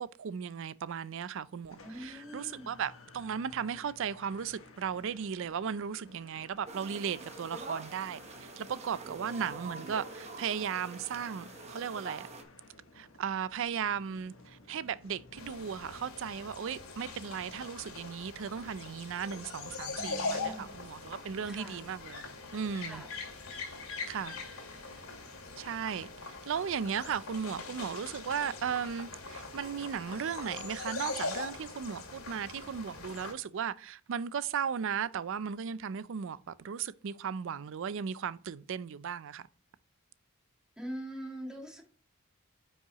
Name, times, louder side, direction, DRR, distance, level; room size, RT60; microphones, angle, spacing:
voice 1, 0.0-12.3 12.9-22.2 22.5-23.0 24.1-24.4 25.6-39.5, right 7 dB, 65° right, 0.4 m, -36 dB
sound 1, 1.7-16.0, left 3 dB, 70° left, 1.3 m, -55 dB
voice 2, 1.8-2.7 20.0-20.7 21.5-21.8 22.8-23.1 40.8-41.8, equal, 5° right, 2.1 m, -43 dB
sound 2, 6.7-12.4, right 3 dB, 30° right, 1.0 m, -45 dB
sound 3, 15.4-33.3, left 3 dB, 85° left, 2.2 m, -42 dB
9.4 x 5.5 x 3.0 m
head